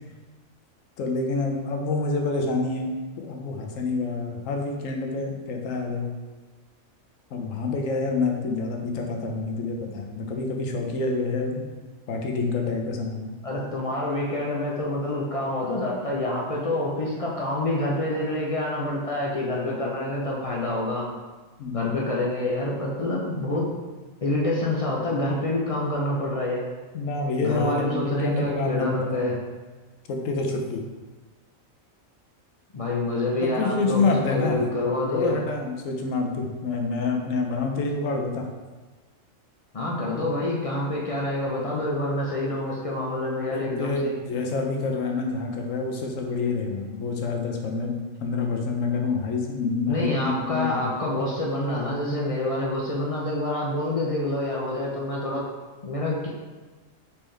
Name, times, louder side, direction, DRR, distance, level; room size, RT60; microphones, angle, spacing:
voice 1, 1.0-6.1 7.3-11.7 12.1-13.3 21.6-21.9 26.9-29.3 30.1-30.8 33.4-34.6 35.1-38.5 43.3-50.9, left 3 dB, 75° left, 2 dB, 1.0 m, -27 dB
voice 2, 13.4-21.0 21.7-23.7 24.2-26.6 27.4-29.4 32.7-35.4 39.7-44.1 49.9-55.5 55.8-56.3, left 1 dB, 60° left, -3 dB, 0.3 m, -27 dB
4.2 x 3.6 x 3.2 m, 1.3 s
omnidirectional pair, 1.4 m